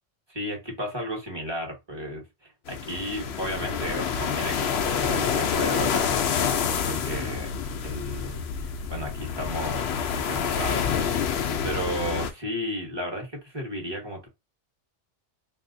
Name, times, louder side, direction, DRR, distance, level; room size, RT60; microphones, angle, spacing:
voice 1, 0.3-6.2 6.6-7.5 7.8-9.9 10.2-14.3, equal, 25° right, 1.2 m, -34 dB
sound 1, 2.7-12.3, left 7 dB, 70° left, 0.8 m, -27 dB
3.5 x 2.7 x 2.5 m
omnidirectional pair, 1.2 m